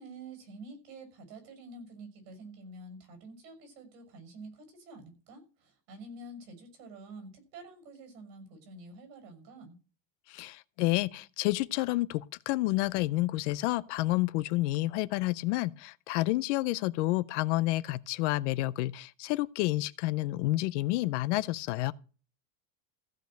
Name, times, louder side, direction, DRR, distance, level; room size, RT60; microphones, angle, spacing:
voice 1, 0.0-9.8, right 2 dB, 85° right, 6.4 m, -48 dB
voice 2, 10.3-21.9, left 18 dB, 50° left, 0.5 m, -29 dB
15.5 x 5.2 x 7.6 m
cardioid pair, 180°, 48 cm